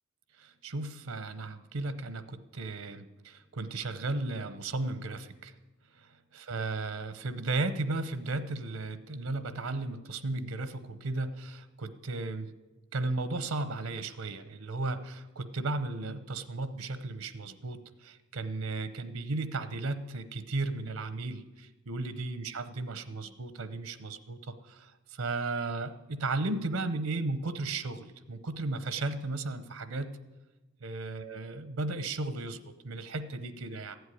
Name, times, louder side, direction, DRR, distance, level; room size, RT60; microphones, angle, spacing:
voice 1, 0.4-5.5 6.0-12.5 12.9-30.1 30.8-34.0, right 2 dB, 75° right, 12 dB, 0.8 m, -35 dB
15.0 x 8.0 x 9.9 m, 1.2 s
head